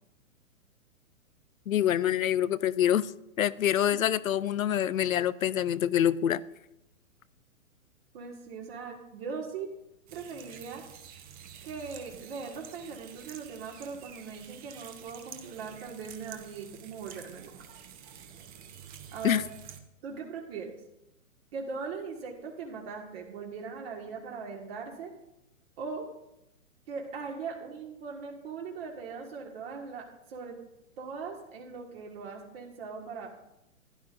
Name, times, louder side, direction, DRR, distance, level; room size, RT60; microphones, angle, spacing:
voice 1, 1.7-3.1 3.4-6.4 19.2-19.4, left 10 dB, 70° left, 0.6 m, -26 dB
voice 2, 8.1-9.7 10.1-10.8 11.6-17.5 19.1-19.4 20.0-20.7 21.5-25.1 25.8-26.0 26.9-30.6 31.0-33.3, right 5 dB, 45° right, 1.8 m, -40 dB
sound 1, 10.1-19.8, right 9 dB, 20° right, 0.8 m, -49 dB
15.5 x 10.5 x 2.6 m
figure-of-eight pair, 120°, 42 cm